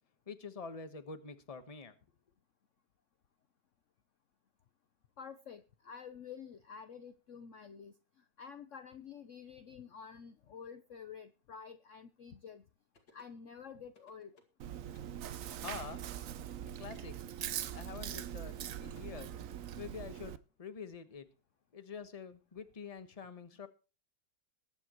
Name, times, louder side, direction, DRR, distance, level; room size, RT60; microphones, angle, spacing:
voice 1, 0.3-2.0 15.6-16.0 16.8-17.1 17.7-19.4 19.8-21.3 21.7-23.7, left 5 dB, 25° left, 1.1 m, -46 dB
voice 2, 5.2-12.6 13.1-14.3, left 7 dB, 55° left, 1.0 m, -50 dB
sound 1, 12.9-13.4 13.9-14.6 14.9-15.2 15.9-16.2 16.9-17.2 17.9-18.2 18.9-19.0, left 3 dB, 90° left, 3.0 m, -65 dB
Chewing mastication, 14.6-20.4, right 10 dB, 60° right, 0.9 m, -42 dB
21.0 x 8.9 x 3.0 m
omnidirectional pair, 1.9 m